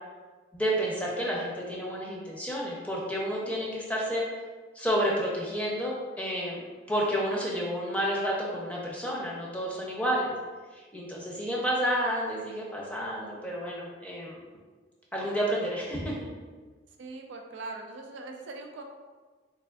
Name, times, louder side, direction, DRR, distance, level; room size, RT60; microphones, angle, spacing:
voice 1, 0.5-4.2 4.7-6.6 6.9-10.3 10.7-14.4 15.1-16.1, equal, 5° left, -4 dB, 0.5 m, -30 dB
voice 2, 17.0-18.8, right 3 dB, 80° right, 2 dB, 0.4 m, -41 dB
3.4 x 3.3 x 2.3 m, 1.4 s
head